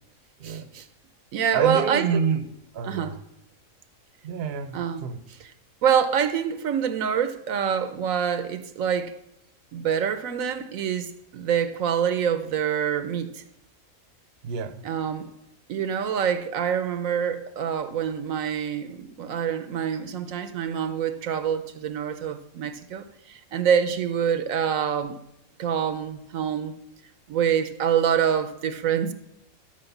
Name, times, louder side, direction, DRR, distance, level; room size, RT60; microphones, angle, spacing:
voice 1, 0.4-0.9 1.3-2.2 2.8-3.2 4.7-5.0 5.8-9.2 9.7-13.4 14.8-15.3 15.7-25.2 25.6-26.7 27.3-29.1, right 8 dB, 75° right, 1.1 m, -26 dB
voice 2, 1.5-3.2 4.2-5.2 14.4-14.8, right 6 dB, 55° right, 0.9 m, -28 dB
13.5 x 4.8 x 7.1 m
omnidirectional pair, 1.5 m